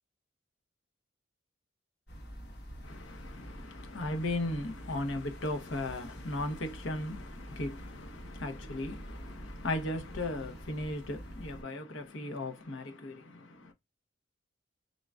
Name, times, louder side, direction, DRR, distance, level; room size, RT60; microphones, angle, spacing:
sound 1, 2.1-11.6, equal, 60° left, 1.2 m, -47 dB
voice 1, 2.8-13.7, left 1 dB, 85° left, 1.0 m, -37 dB
3.8 x 3.7 x 2.4 m
head